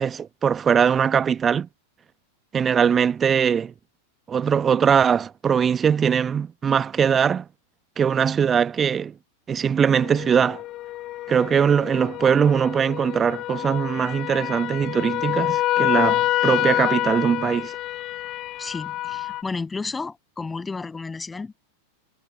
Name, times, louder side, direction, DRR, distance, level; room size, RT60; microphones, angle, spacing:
voice 1, 0.0-1.7 2.5-3.7 4.3-7.4 8.0-9.1 9.5-10.6 11.3-17.7, right 7 dB, 20° right, 1.2 m, -21 dB
sound 1, 9.9-19.4, left 16 dB, 35° left, 1.5 m, -27 dB
voice 2, 18.6-21.6, left 4 dB, 10° left, 7.3 m, -32 dB
figure-of-eight pair, 90°, 0 cm